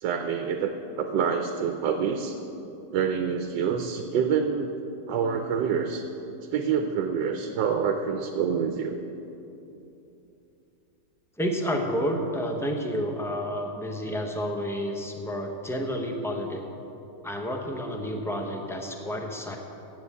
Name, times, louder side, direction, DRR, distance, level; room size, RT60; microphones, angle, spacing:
voice 1, 0.0-2.4 2.9-4.7 5.1-6.0 6.5-9.0, right 6 dB, 90° right, 5 dB, 1.4 m, -27 dB
voice 2, 11.4-16.6 17.2-19.6, equal, 5° left, 2 dB, 0.5 m, -30 dB
9.5 x 7.7 x 8.3 m, 2.9 s
omnidirectional pair, 1.9 m